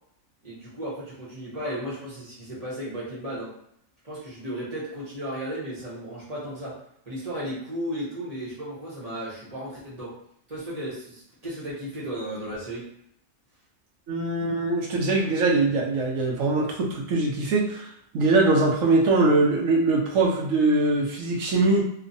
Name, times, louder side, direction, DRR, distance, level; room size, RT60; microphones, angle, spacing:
voice 1, 0.4-3.6 4.0-10.2 10.5-12.9, equal, 35° right, -7 dB, 0.7 m, -35 dB
voice 2, 14.1-17.9 18.1-21.9, right 2 dB, 70° right, 0 dB, 1.0 m, -22 dB
2.9 x 2.1 x 2.6 m, 0.72 s
omnidirectional pair, 1.5 m